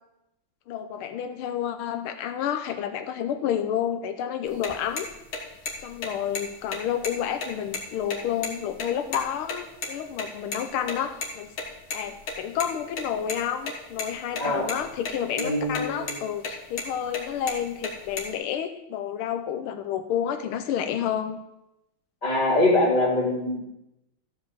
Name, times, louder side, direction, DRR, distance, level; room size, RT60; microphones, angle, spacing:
voice 1, 0.7-5.1 5.8-11.5 11.9-21.4, left 9 dB, 90° left, 7 dB, 1.6 m, -30 dB
sound 1, 4.5-9.6 9.8-9.9 10.2-10.3 10.5-10.6 10.9-11.0 11.2-11.3 11.6-12.7 12.9-13.4 13.7-14.4 14.7-15.1 15.4-15.8 16.1-16.2 16.4-16.9 17.1-18.3, left 4 dB, 70° left, 2.5 m, -32 dB
voice 2, 14.4-14.7 15.4-16.2 22.2-23.6, left 1 dB, 20° left, -6 dB, 2.5 m, -23 dB
14.0 x 5.2 x 7.2 m, 0.89 s
omnidirectional pair, 2.3 m